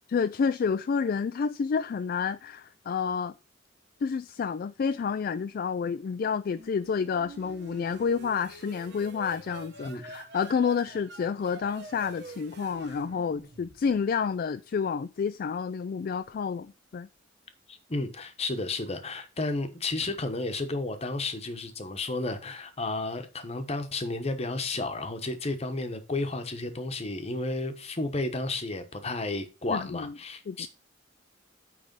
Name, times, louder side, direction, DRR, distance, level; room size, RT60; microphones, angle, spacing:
voice 1, 0.1-3.3 4.0-17.1 29.7-30.1 30.5-30.7, left 6 dB, 50° left, 0.3 m, -29 dB
sound 1, 6.5-14.2, right 2 dB, 60° right, 1.3 m, -46 dB
voice 2, 17.7-30.7, left 2 dB, 35° left, 1.0 m, -32 dB
9.0 x 3.4 x 5.2 m
head